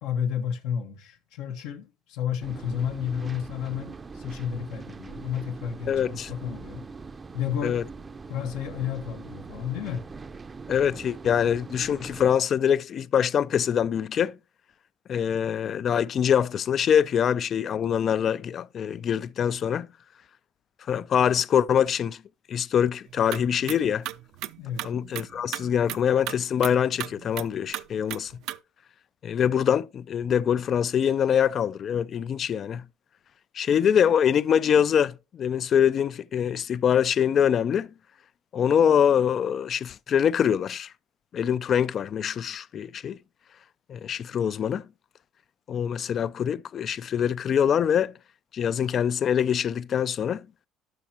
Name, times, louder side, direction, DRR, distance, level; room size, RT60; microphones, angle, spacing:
voice 1, 0.0-6.8 7.3-7.8 8.3-10.0 24.6-24.8, left 8 dB, 85° left, 1.1 m, -31 dB
sound 1, 2.4-12.3, right 4 dB, 25° right, 0.5 m, -42 dB
voice 2, 5.9-6.3 7.6-7.8 10.7-14.3 15.1-19.9 20.9-22.2 22.5-24.0 24.8-28.3 29.2-32.8 33.5-37.9 38.5-40.9 41.3-43.2 43.9-44.8 45.7-48.1 48.5-50.4, left 8 dB, 45° left, 0.3 m, -24 dB
sound 2, 23.1-28.6, right 15 dB, 70° right, 0.5 m, -37 dB
12.0 x 5.9 x 2.8 m
cardioid pair, 110°, 0 cm